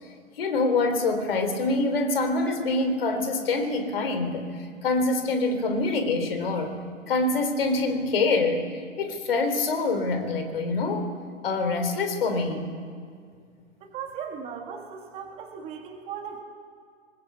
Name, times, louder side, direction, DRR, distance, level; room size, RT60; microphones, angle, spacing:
voice 1, 0.4-4.5 4.8-6.8 7.1-11.1 11.4-12.7, left 3 dB, 45° left, 7 dB, 3.5 m, -25 dB
voice 2, 13.8-16.4, right 7 dB, 15° right, 3 dB, 1.7 m, -37 dB
21.0 x 21.0 x 8.2 m, 2.1 s
figure-of-eight pair, 135°, 38 cm